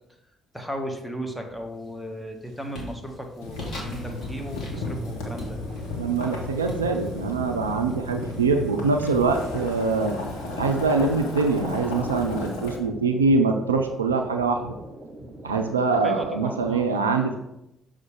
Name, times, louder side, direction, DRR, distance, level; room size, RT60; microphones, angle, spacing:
voice 1, 0.5-5.6 16.0-16.9, equal, 5° left, 3 dB, 1.2 m, -35 dB
sound 1, 1.5-1.9 2.3-8.9, left 1 dB, 55° left, 2.2 m, -43 dB
Boiling, 3.4-12.8, left 2 dB, 75° left, 1.1 m, -34 dB
sound 2, 3.7-16.8, right 1 dB, 40° right, 1.2 m, -43 dB
voice 2, 6.0-10.2 10.6-14.7 15.4-17.4, right 4 dB, 85° right, 5 dB, 0.4 m, -24 dB
6.3 x 4.9 x 3.6 m, 0.87 s
figure-of-eight pair, 45°, 0 cm